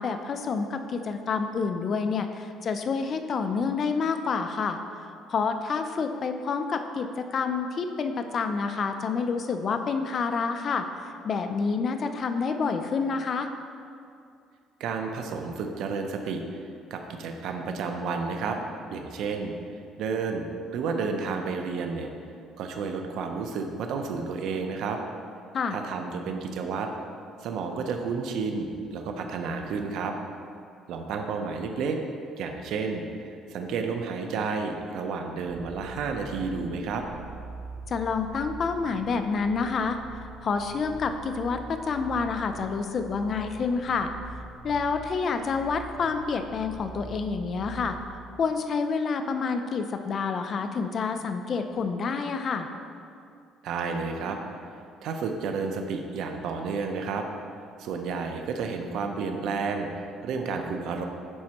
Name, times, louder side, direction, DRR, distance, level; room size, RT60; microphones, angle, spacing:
voice 1, 0.0-4.8 5.3-13.5 25.5-25.8 37.9-40.0 40.4-44.1 44.6-48.0 48.4-52.7, left 5 dB, 45° left, 7 dB, 0.4 m, -28 dB
voice 2, 14.8-18.6 18.9-22.1 22.6-25.0 25.7-26.9 27.4-30.1 30.9-32.0 32.4-37.0 53.6-54.4 55.0-57.3 57.8-61.0, right 5 dB, 70° right, 4 dB, 0.6 m, -31 dB
sound 1, 35.5-48.2, right 4 dB, 45° right, 0.9 m, -43 dB
11.0 x 4.3 x 2.9 m, 2.4 s
cardioid pair, 125°, 0 cm